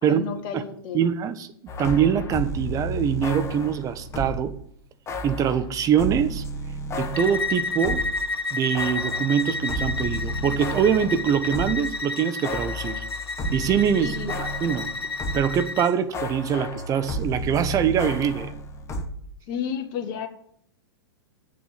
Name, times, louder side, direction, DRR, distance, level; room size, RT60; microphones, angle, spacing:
voice 1, 0.0-1.1 14.0-14.3 19.5-20.3, left 8 dB, 40° left, 6 dB, 1.7 m, -32 dB
voice 2, 0.9-1.5 1.8-4.6 5.2-6.4 7.0-8.1 8.5-13.0 13.5-14.9 15.3-18.5, right 8 dB, 25° right, 12 dB, 1.1 m, -24 dB
sound 1, 1.7-4.5 5.1-8.2 8.5-15.6 15.9-19.1, equal, 20° left, 1.6 m, -32 dB
Bowed string instrument, 7.1-15.9, left 3 dB, 90° left, 1.0 m, -31 dB
8.5 x 7.5 x 8.5 m, 0.66 s
hypercardioid pair, 115°, 13 cm